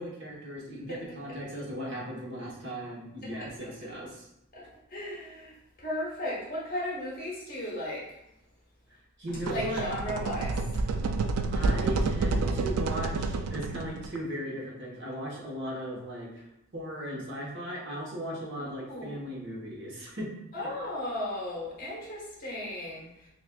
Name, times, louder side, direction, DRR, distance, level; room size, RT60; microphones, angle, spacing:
voice 1, 0.0-4.3 8.9-9.8 11.5-16.5 16.7-20.3 20.6-20.7, equal, 50° right, -3 dB, 1.0 m, -37 dB
voice 2, 3.2-3.9 4.5-8.2 9.5-10.9 18.6-19.3 20.5-23.3, left 1 dB, 40° left, -6 dB, 1.1 m, -36 dB
sound 1, 9.3-14.2, right 3 dB, 85° right, 0.3 m, -29 dB
5.7 x 2.5 x 2.2 m, 0.83 s
head